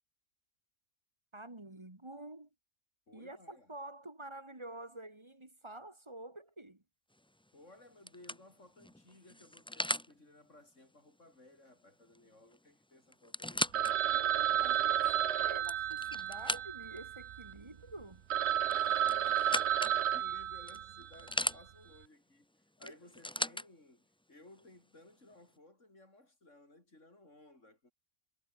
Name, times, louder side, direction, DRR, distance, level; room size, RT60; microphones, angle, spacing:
voice 1, 1.3-2.5 3.1-6.8 14.1-18.2 22.8-22.9, right 2 dB, 20° right, 2.3 m, -48 dB
voice 2, 3.1-3.7 7.5-13.7 18.7-27.9, left 2 dB, 70° left, 6.4 m, -59 dB
sound 1, 7.2-7.5 8.1-10.1 12.1-12.3 12.5-12.6 13.1-13.9 14.5-14.6 15.4-17.0 18.6-20.0 20.7-21.6 22.8-23.7 24.6-24.7, left 1 dB, 5° left, 0.5 m, -37 dB
Telephone, 13.7-17.5 18.0-18.1 18.3-21.2, right 11 dB, 65° right, 0.9 m, -32 dB
omnidirectional pair, 1.3 m